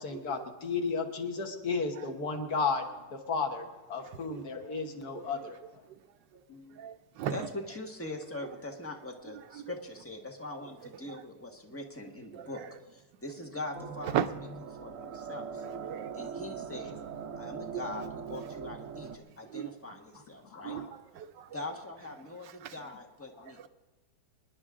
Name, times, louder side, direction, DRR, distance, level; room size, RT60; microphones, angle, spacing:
voice 1, 0.0-5.6 6.5-6.8 20.4-20.9 23.4-23.5, left 4 dB, 60° left, 1.8 m, -34 dB
voice 2, 6.8-7.4 9.6-9.7 12.3-12.5 14.1-14.3 15.8-16.1 19.5-19.7 20.6-20.9 21.2-21.5 22.6-22.7, right 9 dB, 75° right, 1.3 m, -34 dB
voice 3, 7.3-12.6 12.9-14.1 14.8-15.6 16.1-17.0 17.4-20.8 21.5-23.6, left 2 dB, 10° left, 1.2 m, -42 dB
sound 1, 13.7-19.2, right 6 dB, 55° right, 1.0 m, -41 dB
26.0 x 10.0 x 3.7 m
omnidirectional pair, 2.0 m